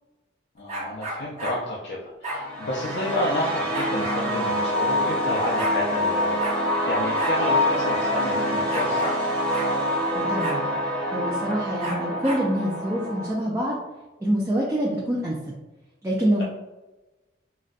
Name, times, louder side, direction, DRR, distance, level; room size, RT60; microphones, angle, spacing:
voice 1, 0.6-6.5 6.9-9.2, left 1 dB, 65° left, -4 dB, 0.4 m, -30 dB
sound 1, 0.7-1.6 2.2-2.4 3.7-4.2 5.1-5.2 5.4-5.8 6.4-6.6 7.1-7.4 7.7-7.8 8.7-9.2 9.5-9.7 10.4-10.6 11.8-12.5, right 1 dB, 35° right, 0.8 m, -32 dB
sound 2, 2.3-13.3, left 1 dB, 5° left, 0.8 m, -26 dB
voice 2, 10.1-10.6 11.1-13.8 14.2-15.4 16.0-16.4, equal, 15° right, -5 dB, 0.4 m, -25 dB
3.9 x 2.1 x 2.5 m, 1.1 s
head